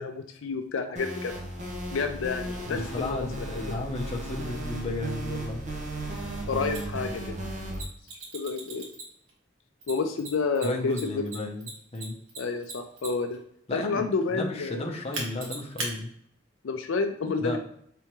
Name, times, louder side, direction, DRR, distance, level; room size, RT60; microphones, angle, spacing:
voice 1, 0.0-1.3 1.9-3.5 6.5-7.4 8.3-8.9 9.9-11.1 12.4-13.4 13.7-14.9 16.6-17.6, left 4 dB, 80° left, 7 dB, 0.4 m, -30 dB
sound 1, 1.0-7.8, right 1 dB, 40° right, 0.9 m, -35 dB
voice 2, 2.7-5.6 10.6-12.2 13.7-16.1 17.4-17.6, left 2 dB, 30° left, 1 dB, 0.6 m, -33 dB
Mechanisms, 6.7-6.8 7.7-9.3 9.8-13.4 15.1-15.9, right 3 dB, 80° right, 1.3 m, -37 dB
4.5 x 3.4 x 3.0 m, 0.67 s
head